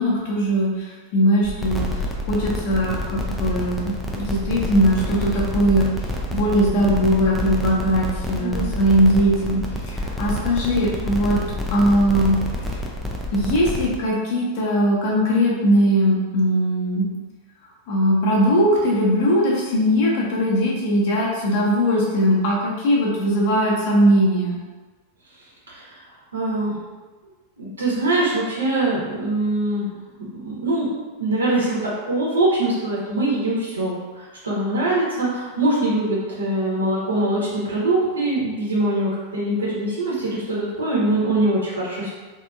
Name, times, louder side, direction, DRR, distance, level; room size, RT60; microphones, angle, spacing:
voice 1, 0.0-1.9 2.3-5.9 6.3-9.6 9.9-11.4 11.7-12.4 13.3-17.1 17.9-24.6, equal, 50° left, -3 dB, 0.9 m, -20 dB
sound 1, 1.4-14.0, left 1 dB, ahead, 0.5 m, -28 dB
voice 2, 26.3-26.7 27.6-29.9 30.3-30.9 31.2-42.1, right 2 dB, 75° right, -7 dB, 1.2 m, -23 dB
3.5 x 2.8 x 2.5 m, 1.3 s
figure-of-eight pair, 90°, 0 cm